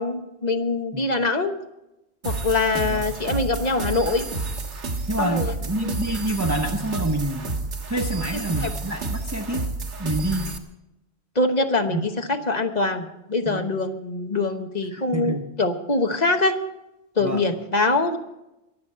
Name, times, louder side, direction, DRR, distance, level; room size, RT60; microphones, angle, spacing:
voice 1, 0.0-1.5 2.2-4.3 5.2-5.5 5.8-6.0 8.6-8.7 11.3-16.6 17.2-18.2, left 2 dB, 40° left, 6 dB, 1.1 m, -24 dB
sound 1, 2.2-10.6, right 3 dB, 90° right, 1.7 m, -30 dB
voice 2, 5.1-7.5 7.9-9.7 10.0-10.5 11.9-12.0 13.5-13.7 14.9-15.5 17.2-17.5, right 1 dB, 15° right, 2 dB, 0.8 m, -27 dB
22.5 x 7.5 x 5.5 m, 0.93 s
omnidirectional pair, 1.2 m